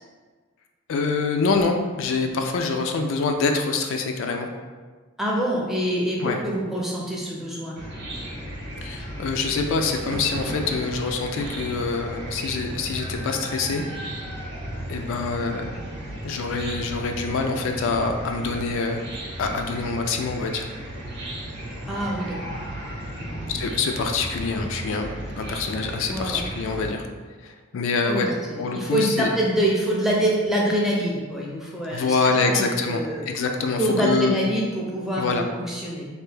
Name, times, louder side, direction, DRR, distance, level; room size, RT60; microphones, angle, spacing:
voice 1, 0.9-4.5 6.2-6.4 8.8-13.8 14.9-15.8 16.2-19.0 19.4-20.7 23.5-27.1 27.4-28.3 28.6-29.3 31.9-33.0 33.3-34.3 35.2-35.4, left 4 dB, 60° left, 4 dB, 0.3 m, -25 dB
voice 2, 5.2-7.8 21.9-22.6 23.2-23.5 26.1-26.4 28.0-33.2 33.8-36.1, right 1 dB, ahead, -4 dB, 0.5 m, -25 dB
Chicken rooster / Cricket, 7.8-26.9, right 1 dB, 50° right, 0.8 m, -35 dB
Thunder, 9.9-19.4 19.7-20.4 20.6-21.6 22.0-23.7, right 3 dB, 70° right, 0.3 m, -44 dB
3.3 x 2.6 x 3.3 m, 1.4 s
head